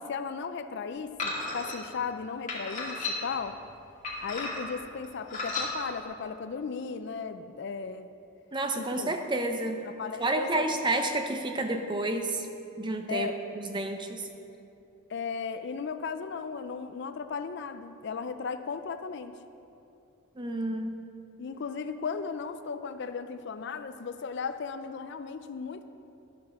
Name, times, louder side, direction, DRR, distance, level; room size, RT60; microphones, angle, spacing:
voice 1, 0.0-3.6 4.2-8.1 8.7-9.1 9.8-10.7 13.1-13.4 15.1-19.4 21.4-25.9, left 5 dB, 55° left, 10 dB, 0.4 m, -36 dB
sound 1, 1.2-1.8 2.5-3.4 4.0-4.8 5.3-5.7, left 3 dB, 35° left, 2.0 m, -33 dB
voice 2, 8.5-9.8 10.2-12.5 12.8-14.3 20.4-21.0, right 2 dB, 20° right, 5 dB, 0.6 m, -30 dB
11.5 x 5.9 x 6.4 m, 2.7 s
head